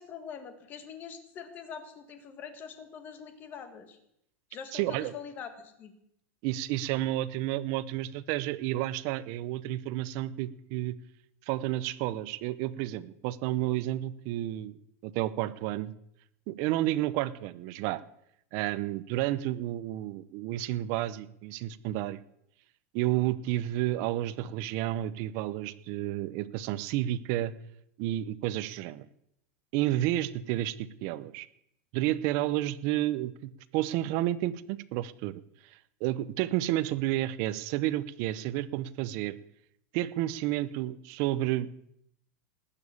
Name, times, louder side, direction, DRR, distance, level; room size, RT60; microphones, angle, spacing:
voice 1, 0.0-4.0 4.5-5.9, left 7 dB, 25° left, 8 dB, 1.7 m, -44 dB
voice 2, 4.7-5.1 6.4-10.9 11.5-14.7 15.0-15.9 16.5-18.0 18.5-22.2 22.9-27.5 28.0-29.1 29.7-31.5 31.9-39.3 39.9-41.7, right 14 dB, 35° right, 15 dB, 0.7 m, -31 dB
19.0 x 7.1 x 8.5 m, 0.75 s
supercardioid pair, 175°, 8 cm